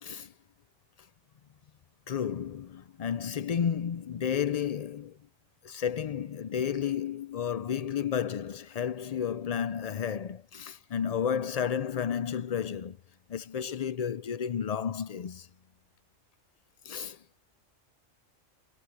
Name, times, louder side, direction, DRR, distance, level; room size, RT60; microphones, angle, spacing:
voice 1, 0.0-0.3 2.1-5.2 5.6-13.0 13.3-15.5 16.8-17.2, left 8 dB, 85° left, 0.3 m, -32 dB
omnidirectional pair, 1.4 m